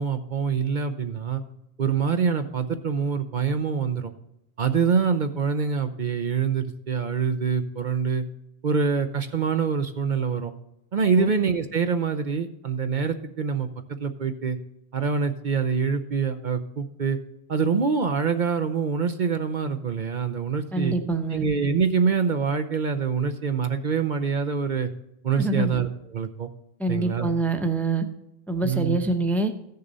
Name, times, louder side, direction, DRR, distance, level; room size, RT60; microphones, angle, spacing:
voice 1, 0.0-1.4 1.8-4.1 4.6-8.2 8.6-10.5 10.9-13.7 14.0-14.6 14.9-17.2 17.5-20.9 21.3-24.9 25.2-26.5 26.9-27.3 28.6-29.0, right 6 dB, 50° right, 8 dB, 0.8 m, -25 dB
voice 2, 20.7-21.4 25.4-25.7 26.8-28.1 28.5-29.5, right 2 dB, ahead, 6 dB, 0.7 m, -25 dB
15.0 x 6.7 x 4.0 m, 0.85 s
omnidirectional pair, 1.1 m